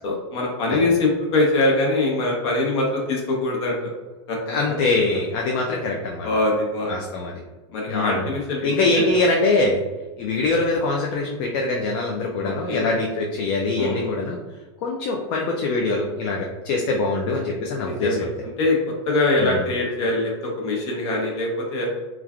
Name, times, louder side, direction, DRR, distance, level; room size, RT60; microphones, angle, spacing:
voice 1, 0.0-3.9 4.3-4.4 6.2-7.0 7.7-9.0 12.4-12.9 13.8-14.1 17.8-18.3 18.6-21.9, left 2 dB, 65° left, -1 dB, 1.0 m, -23 dB
voice 2, 4.5-6.3 6.9-7.3 7.9-8.3 8.6-9.8 10.2-14.4 14.8-18.2 19.4-19.6, left 3 dB, 45° left, 0 dB, 0.4 m, -23 dB
3.1 x 2.4 x 2.4 m, 1.2 s
supercardioid pair, 145°, 15 cm